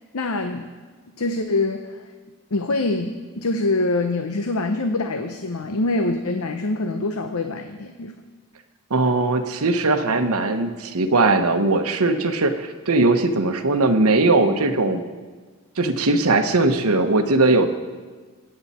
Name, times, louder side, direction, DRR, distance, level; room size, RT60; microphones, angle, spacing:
voice 1, 0.1-0.7 1.2-1.9 2.5-8.1, left 2 dB, 80° left, 7 dB, 0.8 m, -24 dB
voice 2, 8.9-15.0 15.8-17.7, right 2 dB, 80° right, 7 dB, 1.0 m, -19 dB
23.5 x 8.8 x 4.3 m, 1.4 s
head